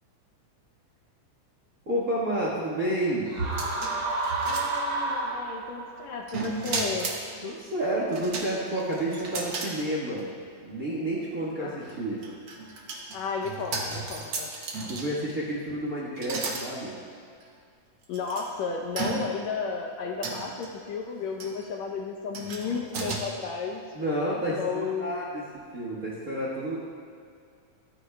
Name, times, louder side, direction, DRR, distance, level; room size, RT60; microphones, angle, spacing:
voice 1, 1.9-3.3 7.4-10.4 10.6-12.2 14.9-17.0 23.9-25.4 25.7-26.8, right 1 dB, 45° right, -5 dB, 1.2 m, -30 dB
sound 1, 3.3-5.9, right 2 dB, 65° right, 2.4 m, -30 dB
sound 2, 3.4-5.2 6.3-7.2 8.1-9.8 10.2-10.3 11.8-15.3 16.2-16.7 17.4-17.5 18.1-18.4 19.0-19.5 20.2-20.7 21.4-21.6 22.3-23.2, right 3 dB, 85° right, 0.9 m, -34 dB
voice 2, 4.5-7.1 11.6-11.8 13.1-14.5 18.1-23.8 24.5-25.3, left 5 dB, 75° left, 1 dB, 1.8 m, -33 dB
14.5 x 13.0 x 2.2 m, 2.3 s
omnidirectional pair, 3.6 m